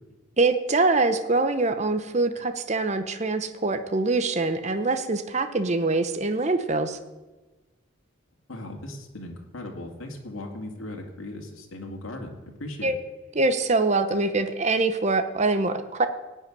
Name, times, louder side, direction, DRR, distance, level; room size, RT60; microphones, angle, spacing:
voice 1, 0.4-7.0 12.8-13.0 13.3-16.1, right 3 dB, 35° right, 9 dB, 0.7 m, -24 dB
voice 2, 8.5-13.0, left 1 dB, 75° left, 2 dB, 2.1 m, -38 dB
15.5 x 5.6 x 9.6 m, 1.2 s
head